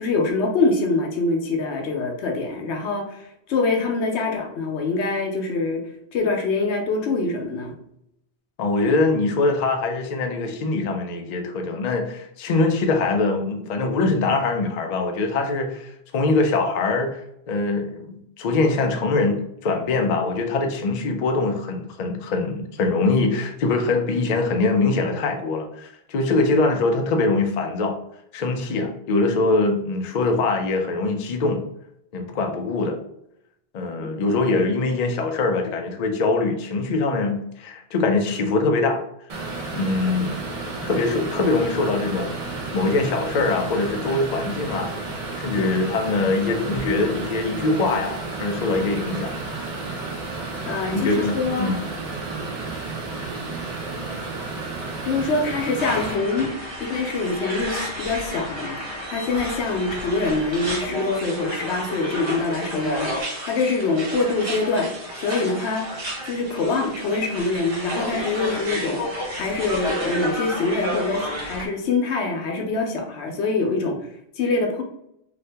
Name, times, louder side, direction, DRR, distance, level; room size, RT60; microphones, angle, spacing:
voice 1, 0.0-5.8 6.1-7.7 34.0-34.1 50.7-51.7 55.0-56.5 56.8-58.8 59.1-65.9 66.3-69.0 69.3-74.0 74.4-74.8, left 3 dB, 85° left, 3 dB, 0.9 m, -24 dB
voice 2, 8.6-17.2 17.5-27.9 28.3-31.6 32.1-33.0 33.7-39.0 39.7-40.5 40.8-42.4 42.7-44.9 45.4-49.3 50.9-51.8, left 3 dB, 55° left, 4 dB, 0.5 m, -23 dB
sound 1, 39.3-56.1, right 3 dB, 40° right, 0.6 m, -32 dB
sound 2, 55.8-71.7, equal, 65° right, 1.2 m, -31 dB
2.7 x 2.5 x 3.3 m, 0.77 s
omnidirectional pair, 1.1 m